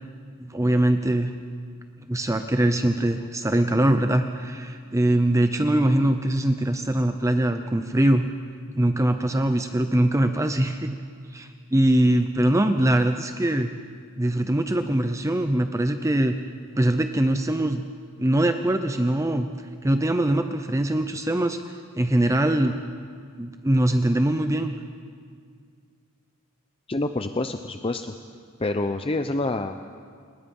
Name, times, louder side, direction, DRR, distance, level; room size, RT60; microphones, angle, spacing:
voice 1, 0.4-1.3 2.1-8.3 8.7-11.0 11.3-13.7 14.2-16.4 16.7-17.8 18.2-19.5 19.8-21.6 22.0-22.8 23.4-24.7, right 1 dB, 15° right, 7 dB, 0.6 m, -22 dB
voice 2, 26.9-28.1 28.6-29.8, left 2 dB, 25° left, 7 dB, 0.6 m, -27 dB
28.5 x 20.0 x 5.4 m, 2.1 s
head